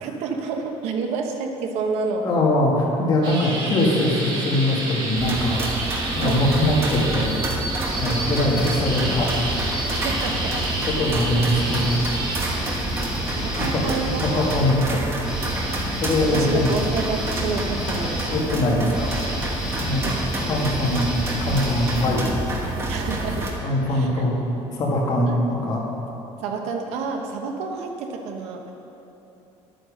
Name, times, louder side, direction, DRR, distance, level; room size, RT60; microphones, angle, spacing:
voice 1, 0.0-2.3 6.2-6.5 9.8-10.6 12.4-14.4 16.2-18.7 19.9-21.0 22.9-23.5 23.9-24.3 25.3-25.4 26.4-28.7, right 4 dB, 70° right, 3 dB, 1.3 m, -30 dB
voice 2, 2.2-7.3 8.0-9.3 10.9-12.2 13.5-13.8 14.3-15.3 16.0-16.8 18.3-19.5 19.8-20.1 20.5-21.1 21.4-22.3 23.6-24.4 24.8-25.9, left 1 dB, 35° left, -3 dB, 2.1 m, -22 dB
sound 1, 3.2-12.4, right 2 dB, 45° right, 2.5 m, -30 dB
sound 2, 5.1-23.5, right 1 dB, 25° right, 1.4 m, -28 dB
sound 3, 7.8-11.0 11.5-22.6, equal, 5° right, 2.1 m, -33 dB
11.0 x 9.0 x 6.5 m, 3.0 s
cardioid pair, 170°, 11 cm